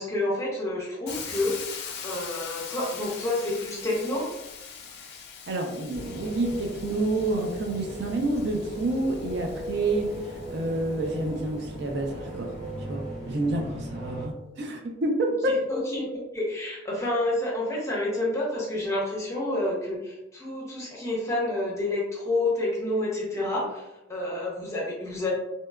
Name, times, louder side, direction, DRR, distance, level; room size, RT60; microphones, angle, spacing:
voice 1, 0.0-1.7 2.0-4.3 15.4-16.0 16.3-23.8 24.1-25.3, left 1 dB, 15° left, -5 dB, 0.7 m, -29 dB
Hiss, 1.1-11.0, left 6 dB, 55° left, 0.4 m, -42 dB
voice 2, 5.5-12.5 12.9-15.6, right 2 dB, 60° right, 2 dB, 0.4 m, -28 dB
sound 1, 5.9-14.3, right 1 dB, 20° right, 0.7 m, -38 dB
2.8 x 2.1 x 2.3 m, 0.97 s
head